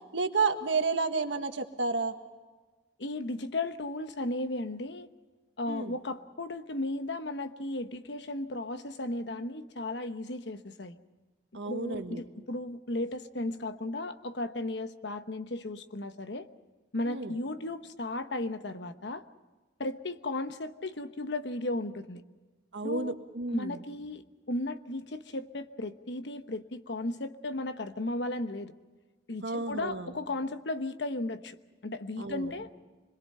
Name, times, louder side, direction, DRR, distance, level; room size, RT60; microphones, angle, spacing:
voice 1, 0.1-2.1 5.7-5.9 11.5-12.2 17.1-17.4 22.7-23.8 29.4-30.1 32.2-32.5, right 4 dB, 85° right, 6 dB, 1.6 m, -31 dB
voice 2, 3.0-5.1 5.6-11.0 11.6-16.5 16.9-19.2 19.8-22.2 22.8-23.1 23.5-28.7 29.3-31.6 31.8-32.7, left 2 dB, 70° left, 10 dB, 1.1 m, -35 dB
26.5 x 21.5 x 5.6 m, 1.3 s
head